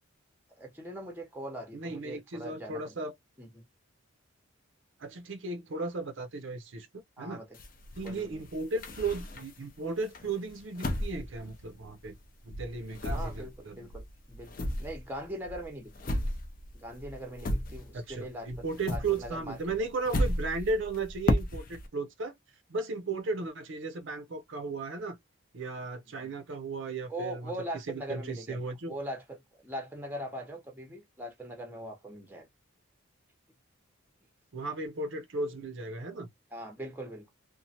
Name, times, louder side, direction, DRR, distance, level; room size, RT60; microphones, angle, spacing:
voice 1, 0.6-2.9 3.4-3.6 7.2-7.6 8.0-8.4 13.1-14.5 14.8-16.1 16.7-18.5 18.8-19.6 27.1-28.6 28.9-32.5 36.5-37.3, right 1 dB, 10° right, 0.7 m, -41 dB
voice 2, 1.7-3.1 5.0-7.4 7.9-12.2 12.4-13.9 17.9-22.3 22.7-25.2 25.5-29.0 34.5-36.3, right 3 dB, 60° right, 0.5 m, -35 dB
sound 1, 7.5-9.7 10.1-12.3 12.5-18.2 18.5-21.9, left 1 dB, 40° left, 0.5 m, -34 dB
3.0 x 2.1 x 2.7 m
head